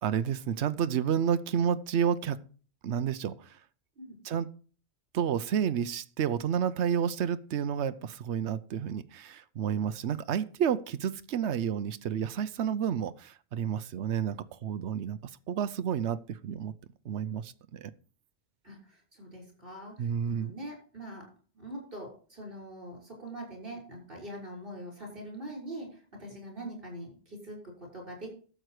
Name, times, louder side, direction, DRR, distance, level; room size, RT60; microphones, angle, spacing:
voice 1, 0.0-2.4 2.8-3.6 4.2-4.5 5.1-16.7 17.0-17.9 20.0-20.5, right 8 dB, 85° right, 13 dB, 1.0 m, -30 dB
voice 2, 18.6-21.3 21.5-28.3, right 1 dB, 55° right, -1 dB, 6.2 m, -43 dB
12.5 x 7.8 x 4.8 m, 0.41 s
omnidirectional pair, 1.1 m